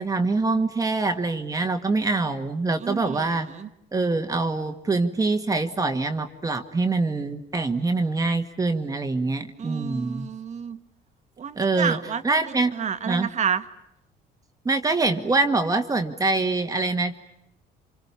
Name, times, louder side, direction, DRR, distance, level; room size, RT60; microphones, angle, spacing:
voice 1, 0.0-3.5 3.9-10.3 11.6-12.0 12.2-12.7 13.0-13.3 14.6-17.2, right 3 dB, 20° right, 6 dB, 1.7 m, -24 dB
voice 2, 2.8-3.3 3.5-3.7 9.6-10.8 11.4-12.4 12.7-13.6, right 7 dB, 45° right, 10 dB, 1.5 m, -29 dB
29.5 x 27.0 x 7.0 m, 0.83 s
cardioid pair, 110°, 17 cm